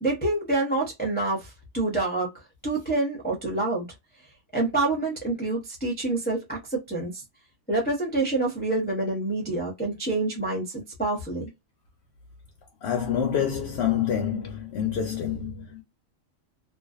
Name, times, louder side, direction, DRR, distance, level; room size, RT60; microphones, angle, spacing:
voice 1, 0.0-3.9 4.5-7.2 7.7-11.5, right 2 dB, 10° left, 0.4 m, -27 dB
voice 2, 12.8-15.8, left 8 dB, 65° left, 0.7 m, -27 dB
2.5 x 2.3 x 2.4 m
omnidirectional pair, 1.4 m